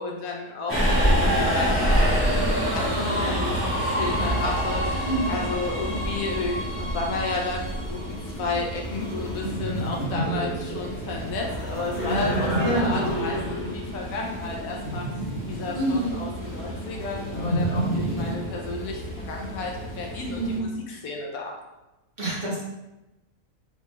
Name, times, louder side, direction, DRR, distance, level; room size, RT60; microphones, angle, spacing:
voice 1, 0.0-15.1 15.5-21.5, left 3 dB, 80° left, -1 dB, 1.1 m, -32 dB
Subway metro underground, 0.7-20.6, equal, 15° left, 0.5 m, -28 dB
voice 2, 5.0-5.4 12.6-13.0 15.7-16.2 20.2-20.7 22.2-22.6, right 1 dB, 45° right, -7 dB, 1.1 m, -27 dB
sound 1, 7.7-18.3, right 1 dB, 35° left, 0.9 m, -31 dB
4.1 x 2.3 x 3.1 m, 1.0 s
omnidirectional pair, 1.5 m